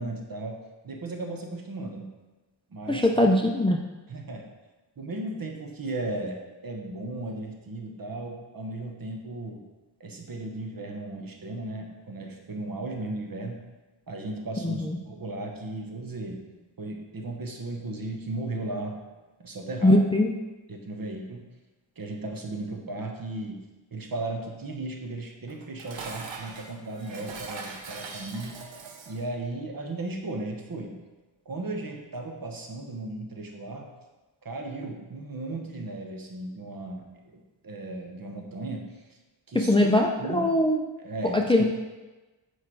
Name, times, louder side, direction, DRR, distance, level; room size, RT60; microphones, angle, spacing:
voice 1, 0.0-2.1 2.7-3.2 4.1-4.5 5.0-9.6 10.0-13.6 14.1-16.5 16.8-19.0 19.4-20.1 20.7-21.5 22.0-23.6 23.9-28.6 29.1-30.9 31.4-33.9 34.4-39.1 39.5-39.9 40.2-40.5 41.0-41.6, right 2 dB, 50° right, 2 dB, 1.1 m, -36 dB
voice 2, 2.9-3.8 14.6-15.0 19.8-20.3 39.5-40.8 41.3-41.6, left 1 dB, 10° left, 2 dB, 0.5 m, -21 dB
Dishes pots and pans, 25.5-29.3, right 4 dB, 85° right, 0.9 m, -41 dB
8.2 x 4.7 x 4.6 m, 1.2 s
wide cardioid pair, 125°, 44 cm